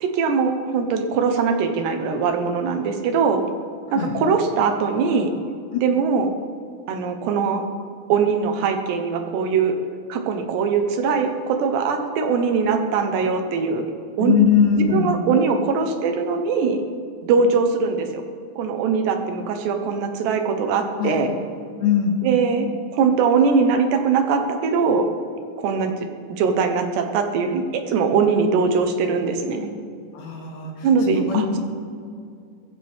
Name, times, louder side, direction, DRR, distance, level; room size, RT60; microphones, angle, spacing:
voice 1, 0.0-3.4 3.9-5.3 5.8-6.3 6.9-7.6 8.1-9.8 10.1-13.8 14.2-14.3 14.9-16.8 17.2-18.2 18.6-21.3 22.2-22.7 22.9-25.0 25.6-25.9 26.4-29.7 30.8-31.7, right 5 dB, 75° right, 5 dB, 3.2 m, -21 dB
voice 2, 14.2-15.2 21.0-21.2 21.8-22.2 30.1-31.4, left 7 dB, 75° left, 0 dB, 4.3 m, -21 dB
21.0 x 14.5 x 3.6 m, 2.3 s
omnidirectional pair, 5.1 m